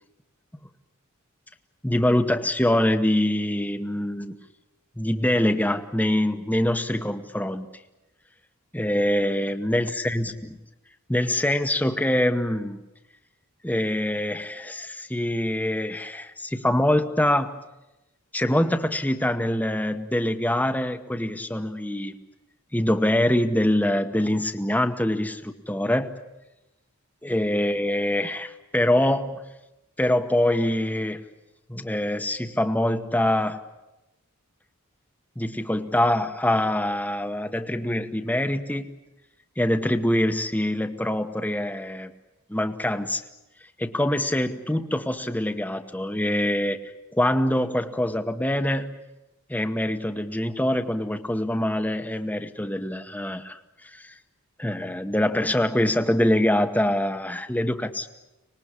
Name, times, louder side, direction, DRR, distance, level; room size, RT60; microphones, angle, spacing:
voice 1, 1.8-4.4 5.0-7.7 8.7-10.3 11.1-12.8 13.6-17.5 18.3-22.1 22.7-26.1 27.2-29.4 30.0-31.2 31.7-33.6 35.4-38.9 39.6-42.1 42.5-43.2 43.8-46.8 47.1-48.9 49.5-53.6 53.9-54.1 54.6-58.1, left 1 dB, 5° left, 8 dB, 1.0 m, -24 dB
25.0 x 20.0 x 10.0 m, 0.98 s
head